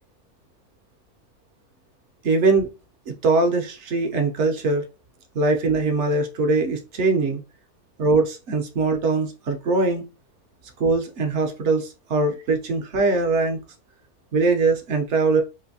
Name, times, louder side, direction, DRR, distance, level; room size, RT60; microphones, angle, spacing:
voice 1, 2.2-2.7 3.1-4.8 5.3-7.4 8.0-10.0 10.8-13.6 14.3-15.4, right 3 dB, 60° right, 4 dB, 0.8 m, -21 dB
3.9 x 2.5 x 2.7 m, 0.29 s
omnidirectional pair, 1.7 m